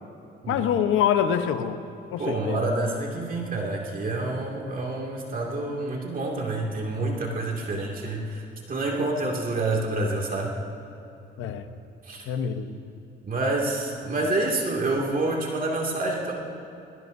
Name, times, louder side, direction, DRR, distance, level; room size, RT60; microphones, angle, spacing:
voice 1, 0.5-1.8 2.1-2.6 11.4-11.7 12.3-12.8, left 9 dB, 85° left, 8 dB, 1.0 m, -25 dB
voice 2, 2.2-8.4 8.7-10.5 12.1-12.3 13.2-16.3, right 2 dB, 45° right, -1 dB, 2.4 m, -28 dB
22.0 x 18.5 x 2.7 m, 2.9 s
cardioid pair, 90°, 20 cm